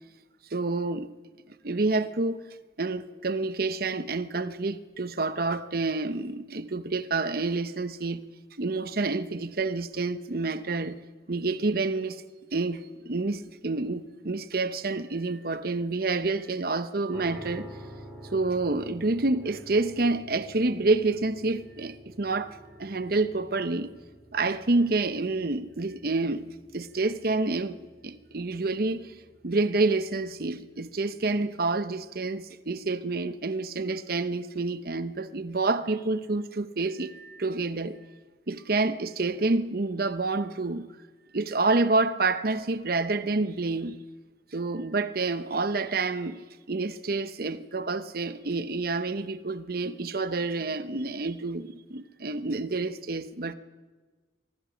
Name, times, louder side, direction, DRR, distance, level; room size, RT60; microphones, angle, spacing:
voice 1, 0.5-1.1 1.6-2.4 2.8-8.2 8.6-11.0 11.3-12.2 12.5-17.7 18.3-23.9 24.3-26.5 26.7-27.8 28.0-29.1 29.4-38.0 38.5-40.9 41.3-44.0 44.5-46.4 46.7-53.5, right 3 dB, 55° right, 0.9 m, -28 dB
sound 1, 17.1-32.0, equal, 5° left, 4.9 m, -50 dB
24.5 x 24.0 x 5.2 m
head